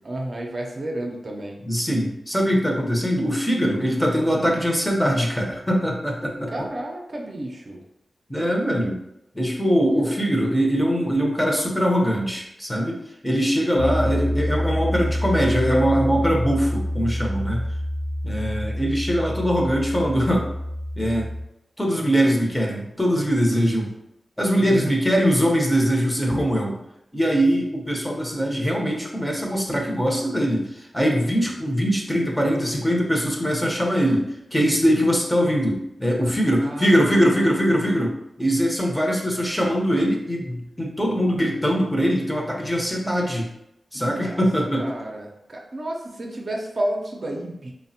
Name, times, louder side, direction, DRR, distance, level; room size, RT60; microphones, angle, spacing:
voice 1, 0.0-1.6 6.5-7.8 9.8-10.1 23.5-23.9 24.6-25.0 31.2-31.6 36.6-37.5 43.9-44.4 44.8-47.7, right 1 dB, 55° right, 0 dB, 0.5 m, -32 dB
voice 2, 1.7-6.5 8.3-9.0 9.3-13.0 13.2-17.6 18.2-20.5 21.0-21.3 21.8-23.9 24.4-26.8 27.1-43.5 43.9-44.9, equal, 10° left, -1 dB, 0.7 m, -22 dB
Piano, 13.8-21.4, equal, 75° left, 0.7 m, -27 dB
3.3 x 2.0 x 2.7 m, 0.84 s
cardioid pair, 55°, 0 cm